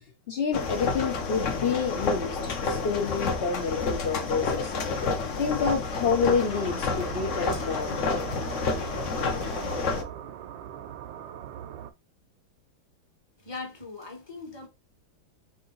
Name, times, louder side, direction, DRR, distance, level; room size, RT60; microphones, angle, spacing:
voice 1, 0.3-4.7 5.4-8.0, left 6 dB, 85° left, 0.5 m, -28 dB
sound 1, 0.5-10.0, left 4 dB, 55° left, 0.8 m, -29 dB
sound 2, 6.4-11.9, right 10 dB, 75° right, 1.2 m, -41 dB
voice 2, 13.4-14.7, left 3 dB, 15° left, 0.9 m, -40 dB
4.9 x 2.7 x 3.8 m
omnidirectional pair, 2.2 m